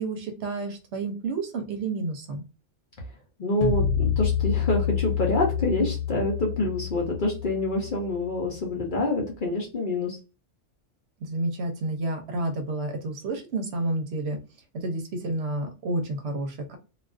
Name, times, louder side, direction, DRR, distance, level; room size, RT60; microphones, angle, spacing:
voice 1, 0.0-2.4 11.2-14.4 14.7-16.8, right 2 dB, 65° right, 4 dB, 0.8 m, -30 dB
voice 2, 3.4-10.2, left 2 dB, 50° left, -1 dB, 0.7 m, -27 dB
sound 1, 3.6-8.6, left 8 dB, 90° left, 1.0 m, -28 dB
2.4 x 2.3 x 2.3 m, 0.32 s
omnidirectional pair, 1.3 m